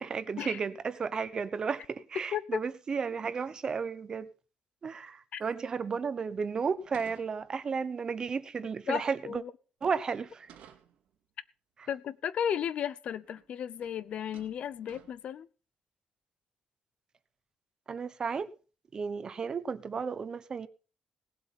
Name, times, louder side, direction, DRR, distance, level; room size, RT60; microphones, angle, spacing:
voice 1, 0.0-4.3 4.8-9.4 9.8-10.5 17.9-18.5 18.9-20.7, right 5 dB, 35° right, 0.9 m, -33 dB
sound 1, 6.8-7.8 10.2-11.1 12.8-12.9 13.2-13.5 13.8-14.0 14.3-15.4, right 8 dB, 90° right, 2.1 m, -56 dB
voice 2, 8.9-9.5 11.9-15.5, left 9 dB, 60° left, 0.7 m, -34 dB
18.0 x 8.0 x 5.7 m
cardioid pair, 160°, 2 cm